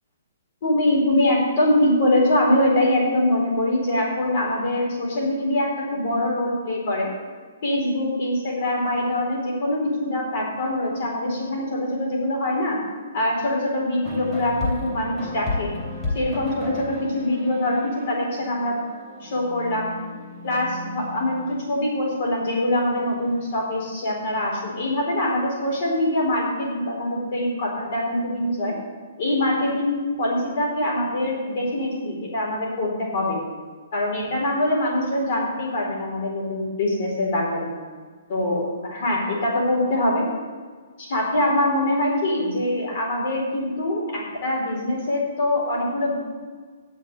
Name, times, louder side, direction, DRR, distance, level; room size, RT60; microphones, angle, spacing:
voice 1, 0.6-7.1 7.6-12.8 13.1-15.7 16.1-18.8 19.2-19.9 20.4-28.8 29.2-33.4 33.9-37.7 38.3-40.3 41.0-46.1, left 1 dB, 45° left, -2 dB, 4.2 m, -23 dB
sound 1, 14.0-23.6, left 2 dB, 10° left, 3.2 m, -34 dB
9.7 x 7.3 x 8.3 m, 1.5 s
hypercardioid pair, 170°, 0 cm